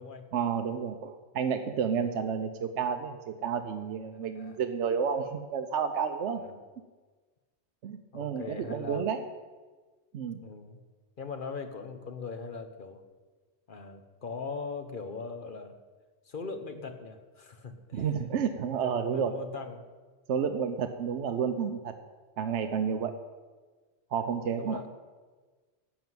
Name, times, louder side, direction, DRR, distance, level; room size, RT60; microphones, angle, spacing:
voice 1, 0.3-6.4 7.8-9.2 10.1-10.5 17.9-19.3 20.3-21.9 22.4-23.1 24.1-24.8, right 7 dB, 75° right, 7 dB, 1.0 m, -31 dB
voice 2, 4.1-4.6 6.4-6.6 8.1-9.0 10.4-10.8 11.2-13.0 13.7-15.8 16.2-18.1 18.8-19.8 24.6-24.9, left 4 dB, 50° left, 7 dB, 1.1 m, -40 dB
12.0 x 6.2 x 9.4 m, 1.4 s
omnidirectional pair, 1.2 m